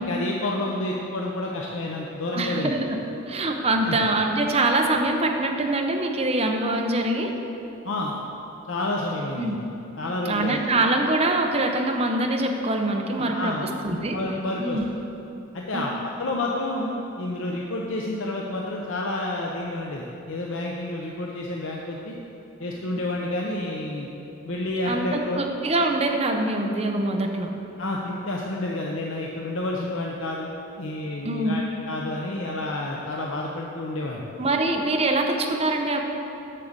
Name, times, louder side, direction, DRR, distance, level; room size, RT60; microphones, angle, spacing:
voice 1, 0.1-2.7 3.8-4.0 7.8-8.1 8.7-9.6 10.0-10.6 13.2-14.8 15.5-22.2 22.6-24.1 24.4-25.4 27.8-30.5 30.8-34.2, left 2 dB, 75° left, -2 dB, 0.8 m, -29 dB
voice 2, 2.3-3.0 3.3-7.3 9.4-9.5 10.2-13.5 13.8-14.2 14.6-14.8 15.7-15.8 24.8-27.5 31.2-31.6 34.4-36.0, right 2 dB, 30° right, 2 dB, 0.8 m, -24 dB
7.7 x 6.6 x 7.4 m, 2.9 s
head